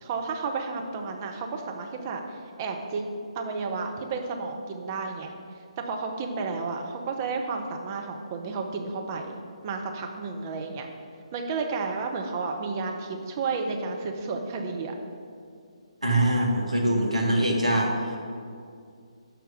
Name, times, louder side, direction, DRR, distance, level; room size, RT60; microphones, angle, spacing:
voice 1, 0.0-3.0 3.4-5.3 5.8-10.9 11.3-14.9, right 4 dB, 25° right, 2 dB, 0.6 m, -32 dB
voice 2, 16.0-18.2, right 1 dB, 80° right, 0 dB, 1.3 m, -23 dB
6.5 x 4.6 x 6.1 m, 2.4 s
figure-of-eight pair, 140°, 3 cm